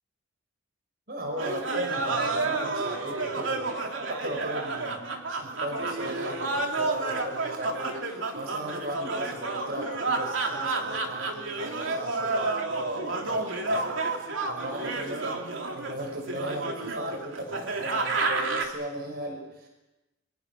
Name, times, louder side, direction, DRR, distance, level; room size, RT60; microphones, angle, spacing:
voice 1, 1.1-3.7 4.1-15.4 15.7-19.7, right 1 dB, 50° right, 2 dB, 5.8 m, -37 dB
sound 1, 1.4-18.7, right 3 dB, 70° right, 3.1 m, -30 dB
29.0 x 24.5 x 6.1 m, 1.0 s
head